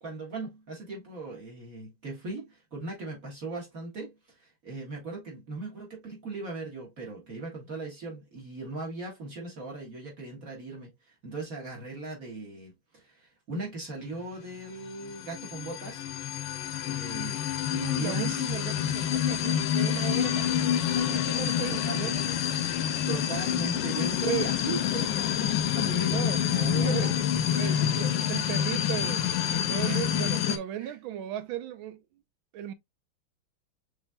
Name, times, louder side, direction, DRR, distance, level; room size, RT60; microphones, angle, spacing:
voice 1, 0.0-16.1 16.8-17.4 17.7-18.5 21.2-21.3 21.7-22.3 23.1-26.2 26.5-27.2 27.5-27.9 29.9-30.1 30.8-30.9, right 3 dB, 45° right, 1.9 m, -38 dB
sound 1, 14.9-30.6, left 9 dB, 75° left, 1.2 m, -27 dB
voice 2, 17.8-22.3 24.2-24.5 26.1-26.4 26.7-27.2 27.5-32.0 32.5-32.7, right 11 dB, 80° right, 1.4 m, -36 dB
6.1 x 3.3 x 2.3 m
omnidirectional pair, 2.2 m